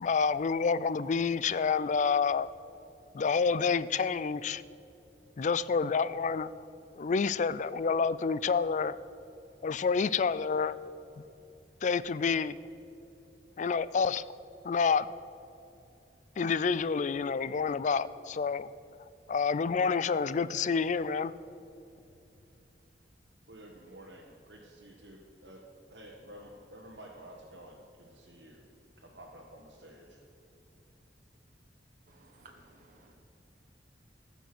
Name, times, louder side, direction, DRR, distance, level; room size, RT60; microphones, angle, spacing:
voice 1, 0.0-2.5 3.1-4.6 5.4-6.5 7.0-9.0 9.6-10.8 11.8-12.6 13.6-14.2 14.6-15.1 16.4-18.7 19.3-21.3, left 5 dB, 45° left, 0.4 m, -28 dB
voice 2, 23.5-25.6 25.9-28.6 29.0-30.2, right 1 dB, 75° right, 1.4 m, -51 dB
voice 3, 32.1-33.1, right 2 dB, 50° right, 1.4 m, -58 dB
15.0 x 7.0 x 6.0 m
head